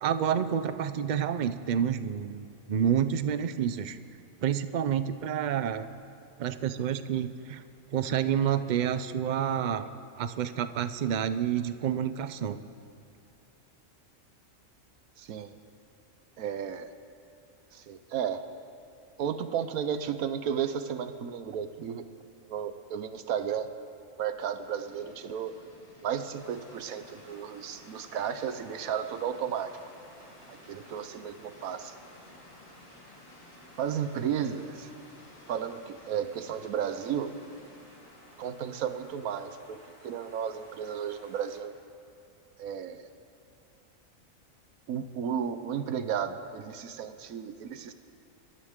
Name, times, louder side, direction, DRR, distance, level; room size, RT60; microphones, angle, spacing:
voice 1, 0.0-4.0 4.4-5.9 6.4-7.6 7.9-9.9 10.2-12.6, right 9 dB, 60° right, 11 dB, 0.4 m, -29 dB
voice 2, 15.2-15.5 16.4-16.9 17.7-18.4 19.2-22.1 22.5-23.7 24.2-25.6 26.0-29.8 30.5-32.0 33.8-34.9 35.5-37.4 38.4-41.8 42.6-43.1 44.9-47.9, right 8 dB, 90° right, 10 dB, 1.2 m, -33 dB
sound 1, 24.6-39.1, left 1 dB, 25° left, 2.1 m, -56 dB
sound 2, 26.3-41.6, left 1 dB, 65° left, 3.2 m, -56 dB
26.0 x 13.0 x 3.7 m, 2.7 s
omnidirectional pair, 1.4 m